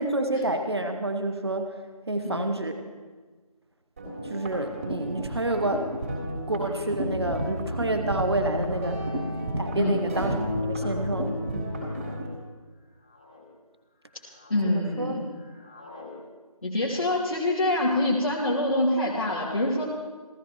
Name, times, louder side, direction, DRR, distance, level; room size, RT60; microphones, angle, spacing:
voice 1, 0.0-1.8 2.1-2.8 4.2-5.9 6.5-9.0 9.6-10.3 10.6-11.7 14.6-15.3, right 2 dB, 45° right, 7 dB, 1.1 m, -29 dB
sound 1, 4.0-12.3, equal, 25° right, 3.7 m, -31 dB
sound 2, 9.4-9.5 10.4-10.8 11.7-12.1 12.7-13.4 13.9-14.8 15.0-16.1, left 3 dB, 10° left, 1.0 m, -51 dB
voice 2, 9.7-10.1 14.5-15.3 16.6-19.8, left 1 dB, 60° left, -5 dB, 2.9 m, -25 dB
30.0 x 14.0 x 3.1 m, 1.4 s
figure-of-eight pair, 165°, 19 cm